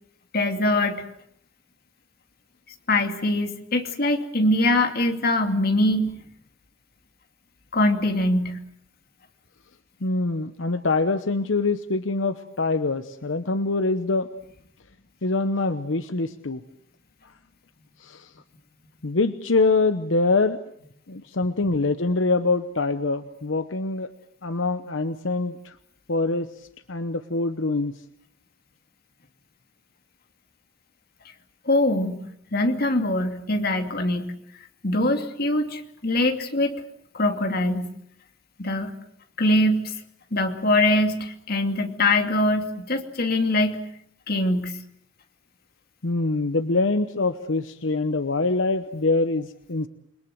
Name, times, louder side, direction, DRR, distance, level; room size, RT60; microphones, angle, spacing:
voice 1, 0.3-1.0 2.9-6.1 7.7-8.6 31.7-32.2 32.5-34.3 34.8-36.7 37.1-37.9 38.6-38.9 39.4-39.9 40.3-43.8 44.3-44.8, left 1 dB, 55° left, 5 dB, 2.6 m, -23 dB
voice 2, 10.0-14.3 15.2-16.6 18.0-18.3 19.0-20.6 21.1-24.1 24.4-25.7 26.1-26.5 26.9-28.0 46.0-49.9, left 3 dB, 80° left, 11 dB, 1.0 m, -24 dB
28.5 x 22.0 x 7.8 m, 0.71 s
head